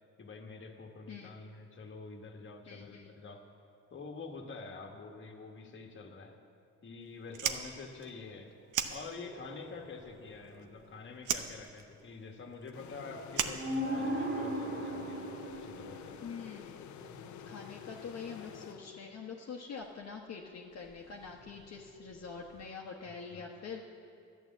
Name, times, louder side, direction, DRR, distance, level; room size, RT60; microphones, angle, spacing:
voice 1, 0.2-3.5 3.9-6.3 6.8-8.5 8.9-16.2 23.3-23.5, left 4 dB, 40° left, 3 dB, 1.4 m, -47 dB
voice 2, 2.7-3.1 16.2-16.8 17.4-23.9, left 5 dB, 55° left, -2 dB, 1.1 m, -45 dB
Fire, 7.3-9.6 9.8-10.8 11.2-14.4, right 9 dB, 80° right, 0.8 m, -37 dB
sound 1, 9.1-10.8 13.2-13.3 13.5-18.0 21.1-21.7 22.4-22.6, equal, 45° right, 2.3 m, -39 dB
sound 2, 12.7-19.4, left 9 dB, 75° left, 0.6 m, -49 dB
11.0 x 9.2 x 7.2 m, 2.5 s
cardioid pair, 90°, 30 cm